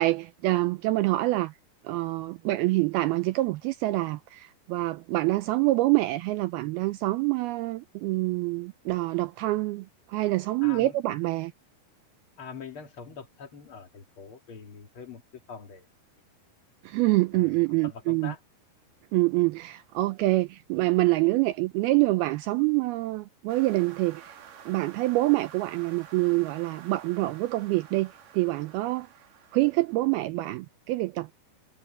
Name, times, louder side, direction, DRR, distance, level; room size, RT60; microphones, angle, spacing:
voice 1, 0.0-1.5 1.8-11.5 16.8-18.3 19.1-24.4 24.7-29.1 29.5-31.3, right 20 dB, 90° right, 2.2 m, -26 dB
voice 2, 10.6-11.0 12.4-15.2 15.5-15.9 17.3-18.4, left 6 dB, 50° left, 1.7 m, -43 dB
sound 1, 23.5-30.2, right 8 dB, 55° right, 3.6 m, -50 dB
omnidirectional pair, 5.0 m